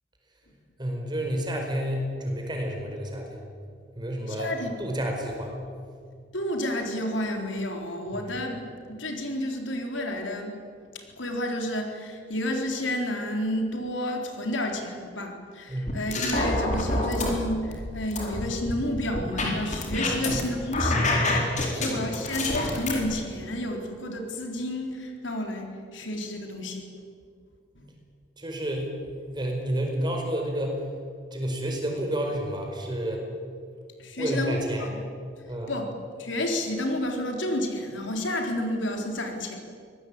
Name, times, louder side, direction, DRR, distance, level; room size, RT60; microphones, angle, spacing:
voice 1, 0.8-3.4 4.0-4.5 4.8-5.5 8.1-8.3 15.7-16.0 20.2-20.4 21.6-21.9 28.4-30.8 31.3-33.2 34.2-34.9 35.5-35.7, equal, 25° right, 2 dB, 4.8 m, -30 dB
voice 2, 4.3-4.9 6.3-8.6 8.9-10.6 10.9-21.1 21.4-26.9 27.8-27.9 34.0-34.9 35.7-35.9 36.2-39.6, left 1 dB, 80° left, 3 dB, 3.9 m, -30 dB
sound 1, 15.9-17.3 17.7-20.4 20.7-23.0, left 2 dB, 40° left, 4.5 m, -27 dB
24.5 x 19.0 x 8.7 m, 2.2 s
head